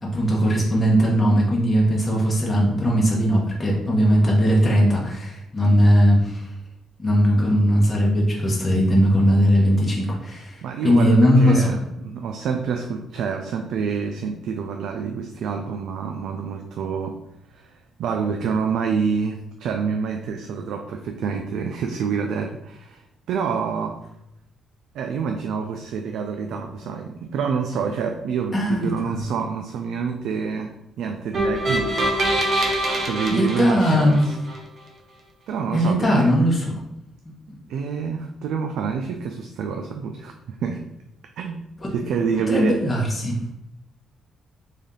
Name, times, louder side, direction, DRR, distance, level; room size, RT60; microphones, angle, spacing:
voice 1, 0.0-6.5 7.0-11.7 28.5-29.2 33.3-34.2 35.7-36.8 37.5-37.6 41.8-41.9 42.5-43.4, equal, 20° left, -3 dB, 1.0 m, -19 dB
voice 2, 10.6-17.2 17.5-24.0 24.9-32.0 33.1-34.3 35.5-36.3 37.7-40.8 41.4-41.7 41.9-42.7, right 6 dB, 80° right, 4 dB, 0.3 m, -27 dB
sound 1, 31.3-34.6, right 1 dB, 50° right, 0.7 m, -24 dB
3.4 x 2.6 x 3.7 m, 0.85 s
cardioid pair, 90°, 0 cm